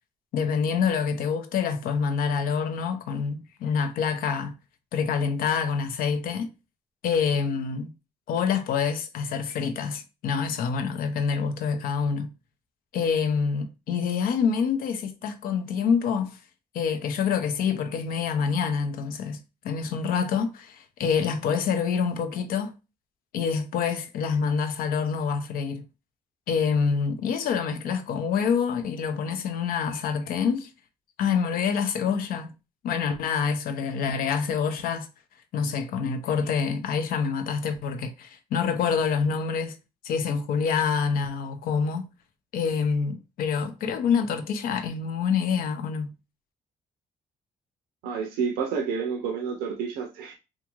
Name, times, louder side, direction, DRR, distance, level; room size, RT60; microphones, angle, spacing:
voice 1, 0.3-4.5 4.9-6.5 7.0-7.9 8.3-12.3 12.9-16.4 16.7-22.7 23.3-25.9 26.5-30.7 31.2-32.5 32.8-35.1 35.5-39.8 40.0-42.1 42.5-46.1, left 6 dB, 70° left, 0.5 m, -26 dB
voice 2, 48.0-50.3, right 6 dB, 85° right, 0.5 m, -29 dB
2.4 x 2.4 x 3.0 m
supercardioid pair, 65°, 15 cm